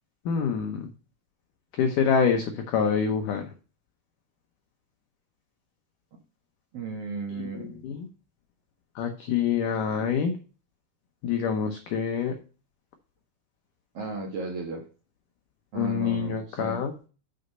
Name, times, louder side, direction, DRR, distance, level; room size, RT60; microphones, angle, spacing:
voice 1, 0.3-0.9 1.7-3.5 7.4-8.1 9.0-10.3 11.2-12.4 15.7-16.9, left 6 dB, 80° left, 5 dB, 1.9 m, -26 dB
voice 2, 6.7-7.8 13.9-14.8 15.7-16.8, right 3 dB, 70° right, 1 dB, 1.4 m, -35 dB
6.7 x 6.4 x 5.4 m, 0.36 s
omnidirectional pair, 4.9 m